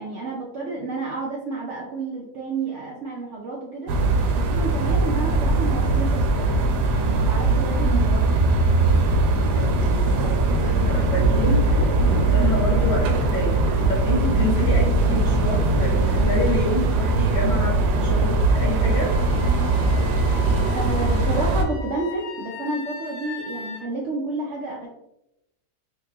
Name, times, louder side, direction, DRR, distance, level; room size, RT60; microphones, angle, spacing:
voice 1, 0.0-3.9 4.3-6.6 6.9-8.4 10.2-10.3 14.6-14.7 20.7-24.9, right 2 dB, 65° right, -3 dB, 0.7 m, -30 dB
sound 1, 3.9-20.9, left 1 dB, 30° right, 0.9 m, -33 dB
sound 2, 3.9-21.7, right 3 dB, 85° right, 1.2 m, -20 dB
voice 2, 9.5-10.4 10.6-19.1, left 2 dB, 50° left, -3 dB, 1.0 m, -28 dB
Wind instrument woodwind instrument, 18.8-23.8, left 5 dB, 75° left, 1.1 m, -39 dB
3.8 x 2.8 x 2.7 m, 0.87 s
omnidirectional pair, 1.7 m